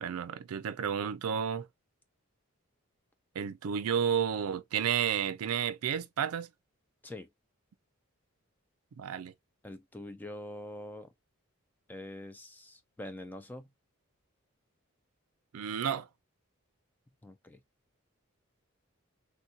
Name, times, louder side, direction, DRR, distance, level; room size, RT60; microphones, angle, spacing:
voice 1, 0.0-1.7 3.3-6.5 9.0-9.3 15.5-16.1, right 8 dB, 90° right, 0.4 m, -31 dB
voice 2, 9.6-11.1 11.9-13.7 17.2-17.6, left 1 dB, 10° left, 0.3 m, -44 dB
3.4 x 2.3 x 2.7 m
head